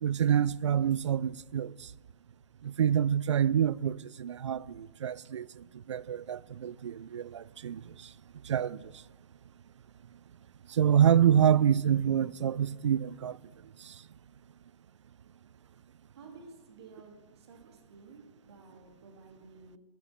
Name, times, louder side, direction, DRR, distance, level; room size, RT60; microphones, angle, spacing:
voice 1, 0.0-1.9 2.6-8.1 8.4-9.0 10.7-13.4 13.8-14.0, right 9 dB, 85° right, 0.4 m, -27 dB
voice 2, 16.1-19.8, right 4 dB, 65° right, 2.6 m, -53 dB
11.5 x 8.6 x 5.8 m
hypercardioid pair, 135°, 15 cm